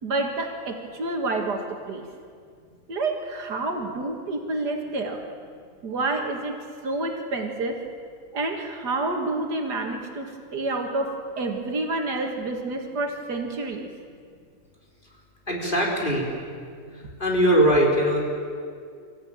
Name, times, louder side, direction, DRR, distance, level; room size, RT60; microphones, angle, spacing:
voice 1, 0.0-2.0 2.9-5.2 5.8-6.6 6.8-7.8 8.3-13.9, right 2 dB, 80° right, 3 dB, 2.7 m, -28 dB
voice 2, 15.5-16.6 16.8-18.2, right 1 dB, 30° left, -2 dB, 4.0 m, -22 dB
25.5 x 15.0 x 9.0 m, 2.2 s
omnidirectional pair, 1.7 m